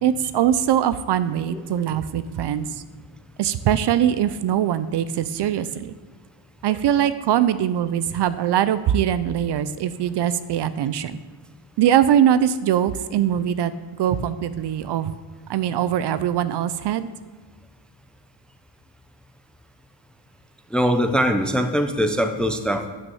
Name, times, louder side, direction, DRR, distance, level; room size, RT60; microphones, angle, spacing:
voice 1, 0.0-2.8 3.4-5.9 6.6-11.2 11.8-13.7 14.0-15.1 15.5-17.1, right 10 dB, 55° right, 14 dB, 0.6 m, -22 dB
voice 2, 20.7-22.9, equal, ahead, 7 dB, 0.5 m, -22 dB
9.3 x 6.4 x 7.0 m, 1.4 s
cardioid pair, 145°, 49 cm